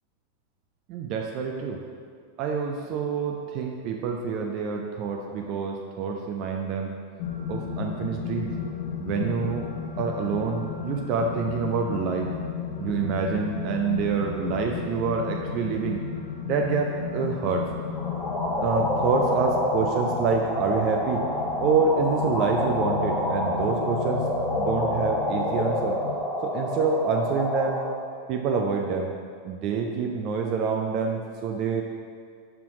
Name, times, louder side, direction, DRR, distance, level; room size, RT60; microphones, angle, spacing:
voice 1, 0.9-1.8 2.4-7.0 7.5-8.5 9.0-9.7 10.0-12.3 12.8-16.0 16.4-17.7 18.6-21.2 21.6-24.2 24.6-26.0 26.4-27.8 28.3-29.1 29.4-31.8, right 5 dB, 40° right, 1 dB, 0.5 m, -27 dB
sound 1, 7.2-26.1, left 6 dB, 50° left, 0.7 m, -34 dB
sound 2, 18.0-27.9, left 1 dB, 20° left, 1.1 m, -28 dB
5.8 x 5.7 x 3.6 m, 2.2 s
figure-of-eight pair, 90°, 0 cm